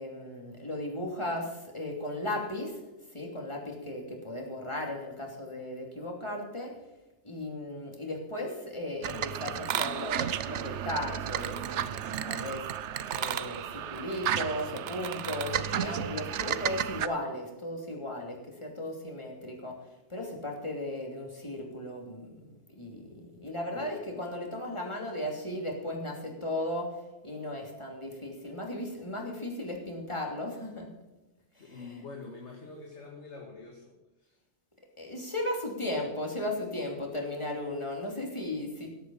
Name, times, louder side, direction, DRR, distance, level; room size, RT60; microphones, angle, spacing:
voice 1, 0.0-2.8 3.1-6.7 7.2-12.7 13.1-19.8 20.1-26.9 27.2-30.9 31.5-32.0 35.0-38.9, left 1 dB, 25° left, 0 dB, 3.2 m, -36 dB
sound 1, 9.0-17.1, right 10 dB, 80° right, 1.0 m, -33 dB
voice 2, 31.6-34.4, left 3 dB, 75° left, 1 dB, 2.2 m, -46 dB
17.5 x 8.6 x 5.7 m, 1.1 s
omnidirectional pair, 1.2 m